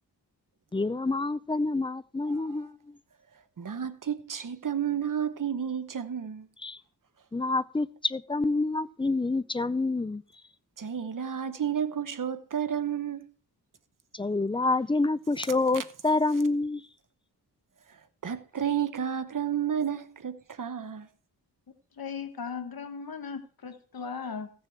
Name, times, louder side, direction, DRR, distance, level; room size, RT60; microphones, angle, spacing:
voice 1, 0.7-2.7 6.6-6.8 7.3-10.2 14.1-16.8, left 3 dB, 15° left, 0.5 m, -27 dB
voice 2, 3.6-6.5 10.8-13.3 15.7-15.8 18.2-21.1, right 8 dB, 50° right, 1.0 m, -31 dB
voice 3, 21.9-24.5, left 6 dB, 60° left, 1.2 m, -37 dB
15.0 x 6.8 x 4.5 m
wide cardioid pair, 80°, 39 cm